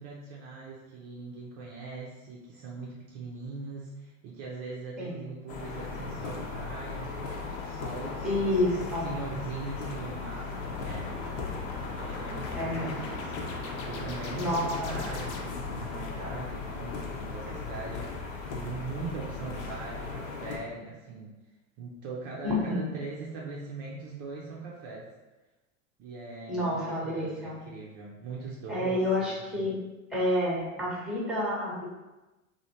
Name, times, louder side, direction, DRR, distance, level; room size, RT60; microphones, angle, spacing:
voice 1, 0.0-11.2 11.9-21.3 21.8-25.1 26.0-29.7, right 3 dB, 35° right, -3 dB, 0.5 m, -41 dB
sound 1, 5.5-20.6, left 4 dB, 65° left, 0.9 m, -37 dB
voice 2, 8.2-9.1 12.5-13.2 14.4-15.0 22.4-22.9 26.5-27.6 28.7-29.8 30.1-31.8, left 1 dB, ahead, -4 dB, 0.8 m, -29 dB
sound 2, 10.6-15.8, left 2 dB, 35° left, 0.6 m, -43 dB
3.1 x 2.6 x 2.8 m, 1.1 s
hypercardioid pair, 105°, 42 cm